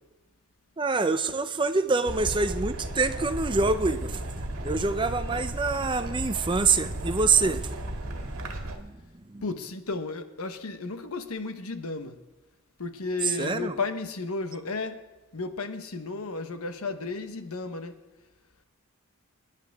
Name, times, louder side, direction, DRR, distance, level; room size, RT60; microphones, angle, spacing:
voice 1, 0.8-4.2 4.6-9.5 13.2-13.8, right 4 dB, 20° right, 0.5 m, -26 dB
sound 1, 2.1-8.8, right 1 dB, 70° right, 1.8 m, -34 dB
voice 2, 9.4-12.2 12.8-15.0 15.3-18.0, left 3 dB, 90° left, 1.2 m, -33 dB
24.5 x 10.5 x 3.6 m
head